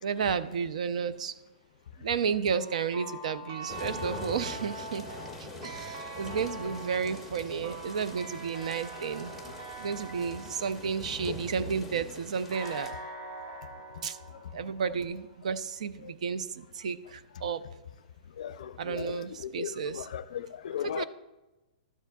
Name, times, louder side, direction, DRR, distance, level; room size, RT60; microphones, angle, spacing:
voice 1, 0.0-1.4 2.0-5.0 5.4-9.3 9.8-12.9 14.0-14.2 14.5-17.6 18.8-20.1 20.8-21.0, right 6 dB, 55° right, 0.4 m, -32 dB
sound 1, 2.5-11.7 12.5-15.4, right 2 dB, 35° right, 2.4 m, -44 dB
sound 2, 3.7-12.9, left 1 dB, 5° right, 0.8 m, -43 dB
voice 2, 18.4-19.2 19.4-21.0, left 9 dB, 55° left, 0.4 m, -37 dB
12.5 x 7.2 x 2.3 m
hypercardioid pair, 175°, 4 cm